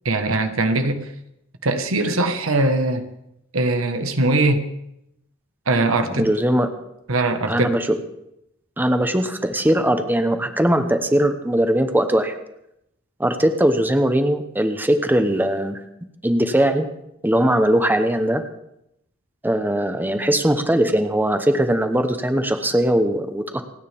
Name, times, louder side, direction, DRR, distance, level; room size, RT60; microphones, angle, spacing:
voice 1, 0.0-1.1 1.6-3.1 3.5-4.6 5.7-6.3 7.1-7.7, right 2 dB, 80° right, 7 dB, 1.4 m, -21 dB
voice 2, 6.2-6.7 7.5-8.0 8.8-12.3 13.2-15.8 16.2-16.9 17.2-18.4 19.4-23.6, right 1 dB, 10° right, 7 dB, 0.9 m, -20 dB
28.5 x 9.6 x 3.5 m, 0.82 s
head